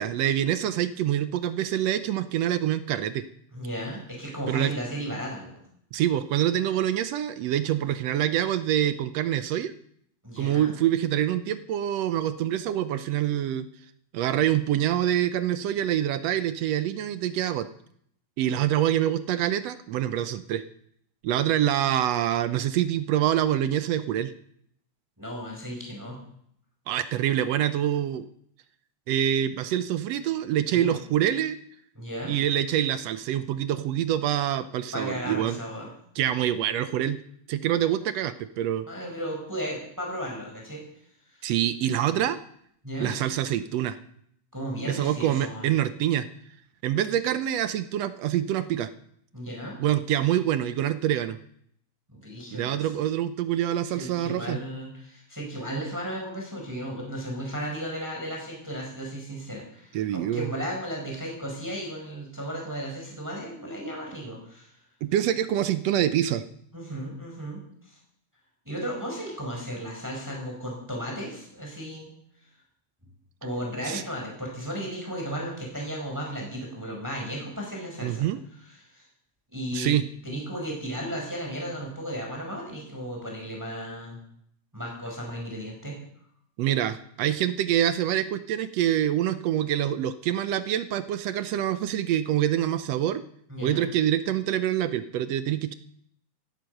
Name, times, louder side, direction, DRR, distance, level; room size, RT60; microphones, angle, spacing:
voice 1, 0.0-3.3 4.5-4.7 5.9-9.7 10.4-13.7 14.1-17.7 18.4-20.6 21.2-24.3 26.9-28.3 29.1-31.6 32.3-35.6 36.2-37.2 37.5-38.9 41.4-42.4 43.0-44.0 44.9-46.3 46.8-48.9 49.8-51.4 52.5-54.6 59.9-60.5 65.0-66.4 73.8-74.0 78.0-78.4 79.7-80.1 86.6-93.2 93.6-95.7, right 11 dB, 75° right, 12 dB, 1.6 m, -26 dB
voice 2, 3.5-5.6 10.2-10.7 25.2-26.2 30.7-31.0 31.9-32.4 34.9-35.9 38.9-40.8 41.3-41.5 42.8-43.2 44.5-45.7 49.3-49.8 52.1-53.0 53.9-64.8 66.7-68.0 68.6-72.1 73.4-78.3 78.8-79.0 79.5-80.0 80.2-84.2 84.7-86.0 93.5-93.9, equal, 5° right, -1 dB, 4.7 m, -35 dB
16.5 x 12.0 x 6.5 m, 0.69 s
omnidirectional pair, 3.5 m